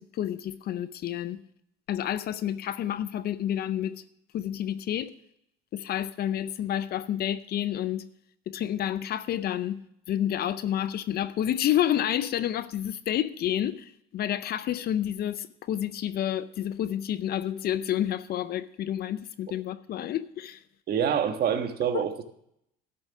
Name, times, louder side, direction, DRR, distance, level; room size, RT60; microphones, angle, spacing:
voice 1, 0.0-1.4 1.9-4.0 4.3-5.1 5.7-8.1 8.5-9.8 10.1-20.6 21.9-22.0, left 11 dB, 50° left, 0.6 m, -29 dB
voice 2, 20.9-22.2, right 8 dB, 50° right, 1.4 m, -26 dB
12.0 x 7.1 x 6.0 m
supercardioid pair, 95°, 20 cm